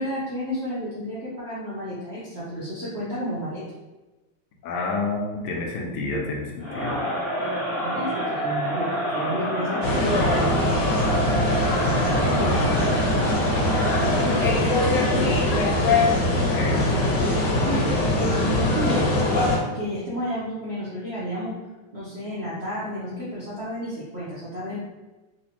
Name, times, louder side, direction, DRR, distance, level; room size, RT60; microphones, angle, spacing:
voice 1, 0.0-3.6 7.8-10.5 12.0-12.9 14.2-15.5 16.7-17.3 17.6-19.1 19.6-21.6 21.9-24.8, equal, 65° right, -10 dB, 0.6 m, -32 dB
voice 2, 4.6-7.0 16.4-16.9, left 3 dB, 85° left, 0 dB, 1.5 m, -29 dB
Crowd, 6.6-14.7, equal, 35° right, 1.2 m, -27 dB
sound 1, 9.8-19.6, left 1 dB, 65° left, 1.2 m, -22 dB
4.1 x 2.4 x 2.9 m, 1.2 s
omnidirectional pair, 2.4 m